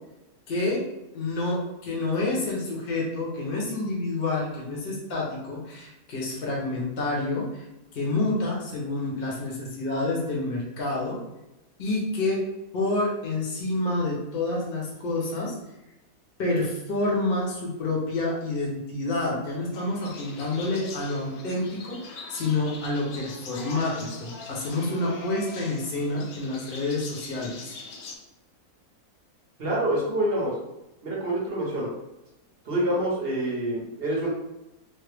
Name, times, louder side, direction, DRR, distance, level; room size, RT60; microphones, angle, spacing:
voice 1, 0.5-0.9 1.1-7.6 7.9-11.2 11.8-12.5 12.7-15.6 16.4-27.7, left 2 dB, 45° left, -3 dB, 0.9 m, -28 dB
sound 1, 19.7-28.2, left 3 dB, 75° left, 0.6 m, -42 dB
voice 2, 29.6-30.5 31.0-31.9 32.7-34.3, right 1 dB, 45° right, -4 dB, 0.9 m, -26 dB
3.2 x 2.1 x 3.3 m, 0.95 s
omnidirectional pair, 1.6 m